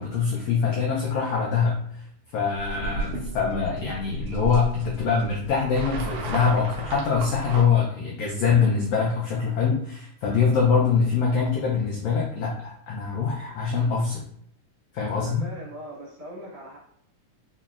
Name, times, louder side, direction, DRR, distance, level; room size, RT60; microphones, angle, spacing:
voice 1, 0.0-2.0 2.3-14.2 14.9-15.4, left 5 dB, 85° left, -3 dB, 1.4 m, -24 dB
sound 1, 2.5-7.7, right 3 dB, 75° right, 1.5 m, -34 dB
voice 2, 15.1-16.8, right 1 dB, 55° right, -6 dB, 2.3 m, -40 dB
5.6 x 2.2 x 2.4 m, 0.66 s
omnidirectional pair, 3.6 m